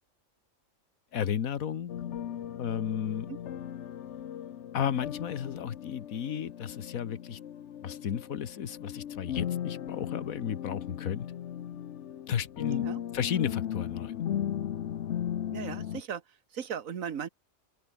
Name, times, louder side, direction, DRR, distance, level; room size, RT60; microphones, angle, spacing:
voice 1, 1.1-1.9 2.6-3.3 4.7-7.4 7.8-11.3 12.3-14.2, left 9 dB, 90° left, 1.5 m, -33 dB
sound 1, 1.9-16.0, left 10 dB, 60° left, 1.0 m, -37 dB
voice 2, 12.7-13.0 15.5-17.3, right 8 dB, 75° right, 1.6 m, -38 dB
open air
omnidirectional pair, 1.4 m